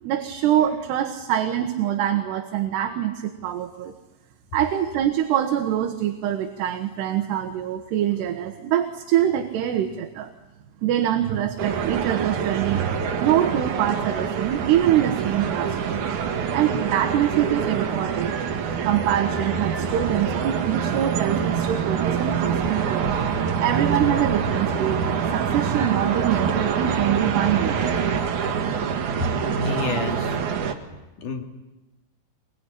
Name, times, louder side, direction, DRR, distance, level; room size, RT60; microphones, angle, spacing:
voice 1, 0.0-3.9 4.5-10.3 10.8-12.9 13.2-16.0 16.5-18.4 18.8-23.1 23.6-25.0 25.3-27.8 28.3-28.4, right 11 dB, 75° right, 5 dB, 3.4 m, -24 dB
sound 1, 11.6-30.7, right 6 dB, 55° right, 2.6 m, -25 dB
voice 2, 29.2-30.4 31.2-31.4, left 3 dB, 50° left, 3 dB, 3.9 m, -29 dB
25.0 x 22.5 x 10.0 m, 1.0 s
omnidirectional pair, 5.0 m